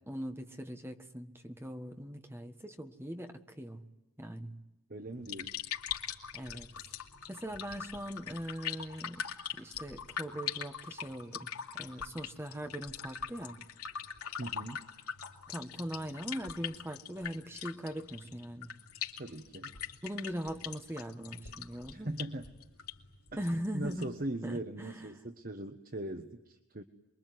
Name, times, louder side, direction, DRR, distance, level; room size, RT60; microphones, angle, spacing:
voice 1, 0.1-3.9 4.2-4.6 6.3-6.7 7.3-9.3 9.6-11.5 11.8-13.6 15.5-18.7 20.0-22.2 23.4-24.2 24.4-25.1, equal, 10° right, 6 dB, 1.6 m, -40 dB
voice 2, 4.9-5.6 14.4-14.8 19.2-19.7 21.9-22.5 23.3-23.4 23.7-26.8, right 1 dB, 40° right, 7 dB, 1.3 m, -40 dB
sound 1, 5.1-24.2, left 8 dB, 85° left, 3.0 m, -42 dB
27.5 x 22.5 x 9.5 m, 0.99 s
head